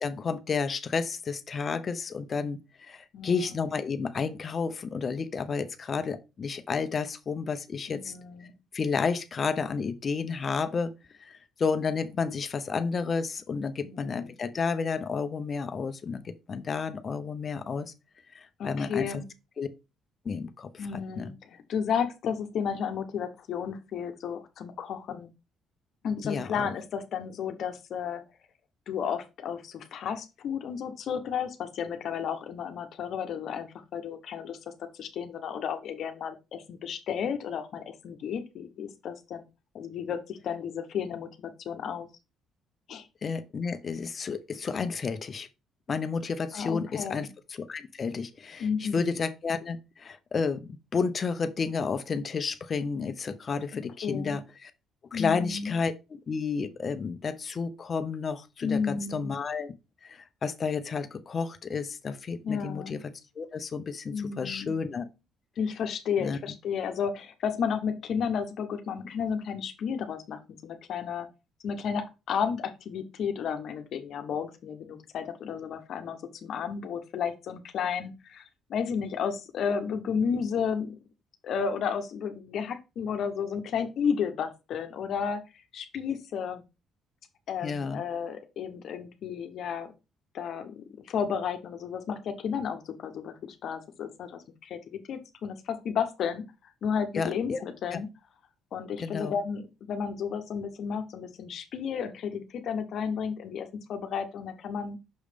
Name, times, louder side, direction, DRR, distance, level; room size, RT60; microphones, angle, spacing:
voice 1, 0.0-8.1 8.7-10.9 11.2-17.9 18.3-19.2 19.6-19.7 20.2-20.9 21.2-21.3 26.2-26.7 43.2-45.5 45.9-54.7 55.1-59.7 60.0-63.0 63.4-65.1 66.2-66.6 87.6-88.0 97.1-97.6 97.9-98.0 99.0-99.3, left 5 dB, 40° left, 0.7 m, -31 dB
voice 2, 3.1-3.7 7.9-8.5 13.8-14.3 18.6-19.2 20.8-25.3 26.0-28.2 28.9-39.4 39.7-42.1 42.9-43.1 46.5-47.3 48.6-49.2 54.0-54.4 55.1-55.7 58.6-59.3 62.4-62.9 64.1-64.7 65.6-71.3 71.6-78.4 78.7-81.0 81.4-85.4 85.7-86.6 87.5-89.9 90.3-96.4 96.8-98.1 98.7-105.0, left 7 dB, 60° left, 1.0 m, -32 dB
6.4 x 3.2 x 5.1 m
cardioid pair, 95°, 0 cm